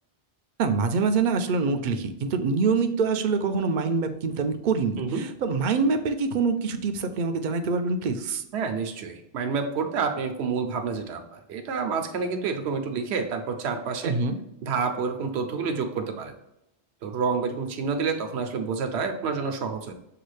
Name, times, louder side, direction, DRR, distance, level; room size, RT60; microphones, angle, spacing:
voice 1, 0.6-8.4 14.0-14.3, right 4 dB, 55° right, 7 dB, 0.6 m, -25 dB
voice 2, 8.5-14.2 14.6-16.3 17.0-19.9, right 5 dB, 80° right, 5 dB, 0.9 m, -28 dB
6.7 x 2.4 x 3.2 m, 0.84 s
omnidirectional pair, 1.1 m